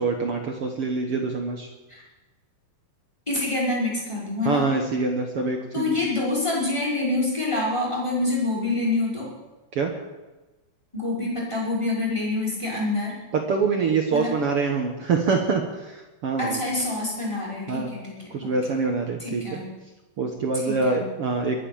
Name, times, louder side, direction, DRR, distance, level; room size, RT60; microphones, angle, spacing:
voice 1, 0.0-1.7 4.4-6.0 9.7-9.9 13.3-16.6 17.7-17.9 18.3-19.6 20.2-21.6, right 4 dB, 65° right, 2 dB, 1.4 m, -25 dB
voice 2, 3.3-4.6 5.7-9.3 10.9-13.1 14.1-14.3 16.4-18.5 19.2-19.7 20.6-21.0, left 2 dB, 5° left, -5 dB, 5.5 m, -26 dB
23.0 x 8.4 x 7.2 m, 1.1 s
omnidirectional pair, 4.5 m